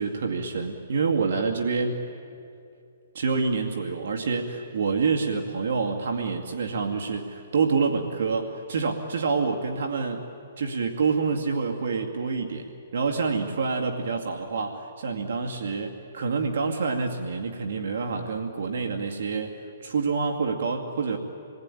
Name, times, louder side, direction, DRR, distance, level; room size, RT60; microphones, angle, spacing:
voice 1, 0.0-2.0 3.1-10.3 10.6-12.7 12.9-21.2, right 4 dB, 70° right, 3 dB, 2.2 m, -27 dB
28.0 x 20.5 x 10.0 m, 2.6 s
hypercardioid pair, 155°, 0 cm